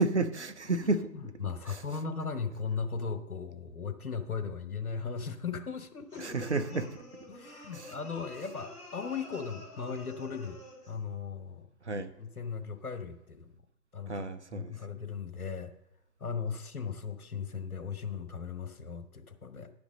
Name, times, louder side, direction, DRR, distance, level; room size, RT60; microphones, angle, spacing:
voice 1, 0.0-1.3 1.7-1.8 6.2-7.0 7.7-8.0 11.8-12.1 14.1-15.1, right 3 dB, 45° right, 9 dB, 0.7 m, -31 dB
voice 2, 1.4-6.4 6.7-6.9 7.3-10.6 10.9-11.6 11.9-13.5 13.9-14.2 14.5-15.7 16.2-19.7, left 5 dB, 60° left, 9 dB, 1.1 m, -37 dB
sound 1, 6.1-11.0, left 1 dB, 5° left, 3.1 m, -49 dB
11.0 x 5.2 x 6.3 m, 0.83 s
figure-of-eight pair, 150°, 48 cm